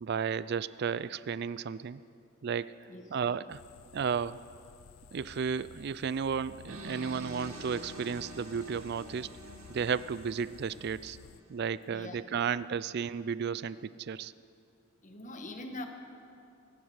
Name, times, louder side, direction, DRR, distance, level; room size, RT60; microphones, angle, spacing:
voice 1, 0.0-2.0 2.4-2.8 3.1-3.6 3.9-4.4 5.1-9.4 9.7-11.2 11.5-14.3, right 6 dB, 50° right, 17 dB, 0.4 m, -33 dB
voice 2, 2.9-3.4 11.9-12.4 15.0-15.8, left 1 dB, 35° left, 5 dB, 1.3 m, -44 dB
sound 1, 3.5-11.4, left 7 dB, 70° left, 0.4 m, -54 dB
sound 2, 6.7-11.6, right 1 dB, 90° right, 2.0 m, -47 dB
23.5 x 11.5 x 5.0 m, 2.5 s
head